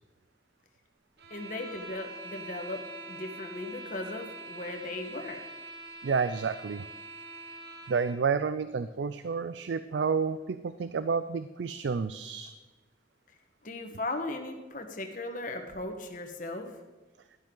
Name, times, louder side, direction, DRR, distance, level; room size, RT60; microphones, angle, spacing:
sound 1, 1.2-8.2, right 2 dB, 65° right, 1.2 m, -44 dB
voice 1, 1.3-5.4 13.6-16.8, left 2 dB, 45° left, 5 dB, 1.3 m, -37 dB
voice 2, 6.0-6.9 7.9-12.5, right 5 dB, 85° right, 12 dB, 0.4 m, -30 dB
12.0 x 11.5 x 3.9 m, 1.2 s
head